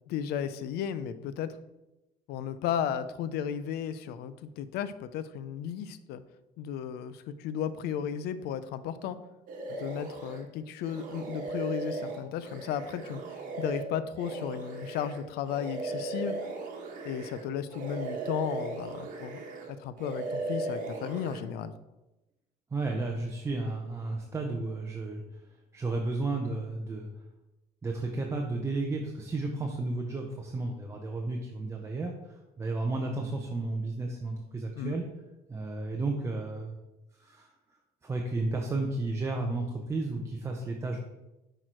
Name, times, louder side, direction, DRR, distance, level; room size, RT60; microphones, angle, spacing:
voice 1, 0.1-1.5 2.3-6.2 6.6-9.2 9.8-16.4 17.0-19.4 19.7-21.7 34.8-35.0, left 9 dB, 75° left, 13 dB, 0.5 m, -34 dB
sound 1, 9.5-10.4 10.8-17.4 17.7-19.7 20.0-21.4, right 3 dB, 55° right, 1.2 m, -37 dB
voice 2, 22.7-25.2 25.7-27.1 27.8-35.0 35.5-36.8 37.2-37.5 38.0-41.0, right 2 dB, 15° right, 1 dB, 0.6 m, -33 dB
6.3 x 4.5 x 4.5 m, 1.0 s
cardioid pair, 145°, 17 cm